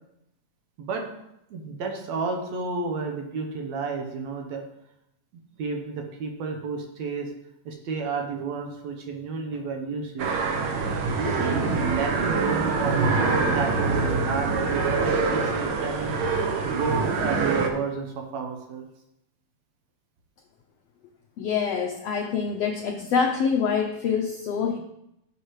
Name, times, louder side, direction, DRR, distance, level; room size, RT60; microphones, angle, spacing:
voice 1, 1.5-4.6 5.6-7.3 7.7-10.3 11.2-16.1 16.6-18.9, right 4 dB, 65° right, 3 dB, 2.1 m, -31 dB
sound 1, 10.2-17.7, right 4 dB, 80° right, 1.1 m, -25 dB
voice 2, 21.4-24.8, left 6 dB, 80° left, 3 dB, 1.4 m, -25 dB
13.5 x 6.6 x 3.2 m, 0.83 s
omnidirectional pair, 3.6 m